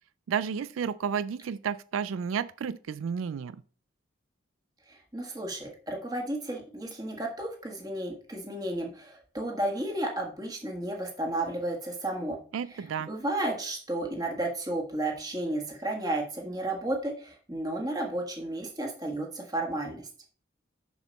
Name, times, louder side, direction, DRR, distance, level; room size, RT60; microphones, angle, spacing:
voice 1, 0.3-3.6 12.5-13.1, right 7 dB, 90° right, 0.3 m, -32 dB
voice 2, 4.9-12.4 12.7-20.0, right 1 dB, 20° right, 1.6 m, -33 dB
6.9 x 6.3 x 4.0 m
head